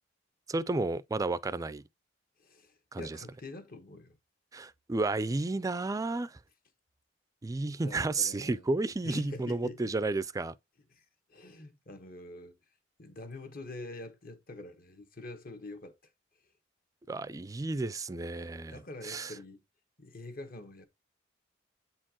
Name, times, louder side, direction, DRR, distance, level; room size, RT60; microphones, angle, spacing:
voice 1, 0.5-1.8 2.9-3.2 4.5-6.4 7.4-10.5 17.1-19.3, right 2 dB, 20° right, 0.3 m, -32 dB
voice 2, 2.4-4.2 7.8-8.7 9.0-9.8 10.9-12.6 13.0-16.0 16.4-16.5 18.7-19.6 20.0-20.9, left 2 dB, 50° left, 1.3 m, -45 dB
8.0 x 4.4 x 2.9 m
head